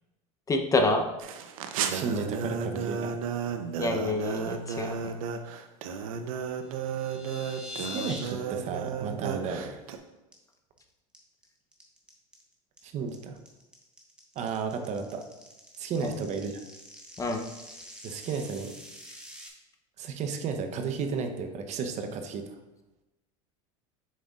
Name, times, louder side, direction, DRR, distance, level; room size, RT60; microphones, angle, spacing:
voice 1, 0.5-1.1 3.8-5.0 16.0-16.1 17.2-17.4, left 2 dB, 20° left, 4 dB, 0.7 m, -27 dB
sound 1, 1.2-10.0, right 6 dB, 85° right, 0.7 m, -33 dB
voice 2, 1.9-3.2 7.8-9.8 12.8-13.4 14.4-15.2 15.8-16.5 18.0-18.7 20.0-22.5, right 5 dB, 45° right, 6 dB, 0.8 m, -33 dB
sound 2, 6.7-8.3 8.6-8.9 9.2-9.3 9.7-10.0 10.3-10.8 11.1-19.5, left 2 dB, 5° right, 1.3 m, -45 dB
7.5 x 6.4 x 2.4 m, 1.0 s
supercardioid pair, 115°, 17 cm